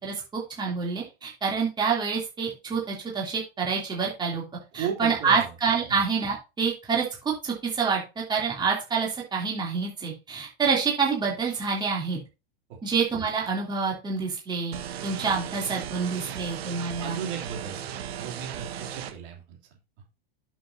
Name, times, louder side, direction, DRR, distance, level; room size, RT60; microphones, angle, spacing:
voice 1, 0.0-4.4 4.7-8.0 8.3-12.2 12.8-17.2, right 5 dB, 15° right, -2 dB, 3.0 m, -27 dB
voice 2, 4.7-5.5 5.9-6.0 12.7-12.8 17.0-19.6, right 7 dB, 55° right, 1 dB, 3.0 m, -35 dB
sound 1, 14.7-19.1, right 9 dB, 80° right, 1.5 m, -36 dB
11.0 x 6.4 x 2.8 m, 0.28 s
supercardioid pair, 150°, 31 cm